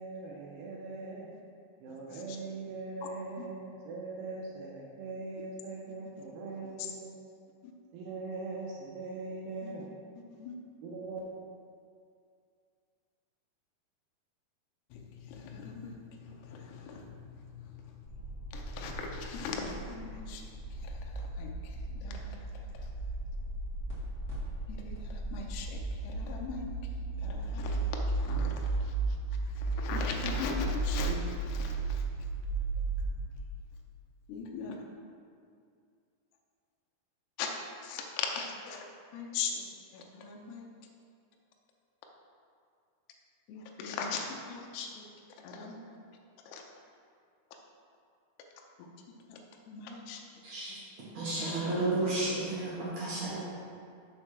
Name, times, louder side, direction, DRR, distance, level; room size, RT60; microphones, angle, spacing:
voice 1, 0.0-1.3 1.8-7.1 7.9-9.9 10.8-11.2, right 3 dB, 80° right, -3 dB, 2.7 m, -41 dB
voice 2, 1.9-2.4 3.0-3.1 3.4-3.5 6.2-6.3 7.6-7.7 9.6-9.9 10.3-10.5 14.9-22.9 24.7-26.7 27.1-29.2 29.5-32.1 34.3-34.8 37.4-37.5 37.8-38.8 39.1-39.6 39.9-40.7 43.5-45.1 45.4-45.8 46.5-46.6 49.3-49.4 49.7-50.2, left 5 dB, 80° left, 1 dB, 2.6 m, -40 dB
sound 1, 18.1-33.4, right 3 dB, 40° left, 1.2 m, -35 dB
voice 3, 50.4-50.8 51.1-53.4, right 2 dB, 60° right, -8 dB, 1.8 m, -32 dB
6.4 x 4.6 x 6.0 m, 2.3 s
omnidirectional pair, 5.0 m